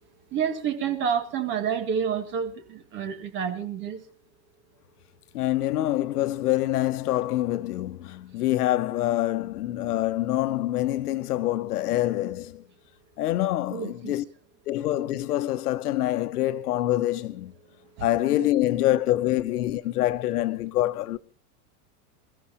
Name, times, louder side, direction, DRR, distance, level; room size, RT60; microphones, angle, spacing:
voice 1, 0.3-4.1 13.7-14.2 18.0-18.1, right 7 dB, 25° right, 1.9 m, -29 dB
voice 2, 5.3-12.6 13.2-14.2 14.7-17.5 18.0-21.2, left 14 dB, 80° left, 1.1 m, -25 dB
28.0 x 14.0 x 2.8 m
supercardioid pair, 170°, 45 cm